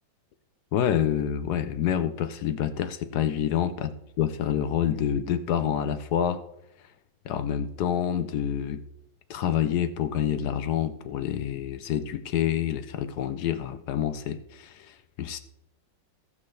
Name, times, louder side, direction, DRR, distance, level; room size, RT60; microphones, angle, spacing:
voice 1, 0.7-3.9 4.2-6.4 7.2-8.8 9.3-15.4, left 9 dB, 70° left, 10 dB, 1.0 m, -27 dB
16.0 x 6.0 x 3.2 m, 0.80 s
omnidirectional pair, 2.1 m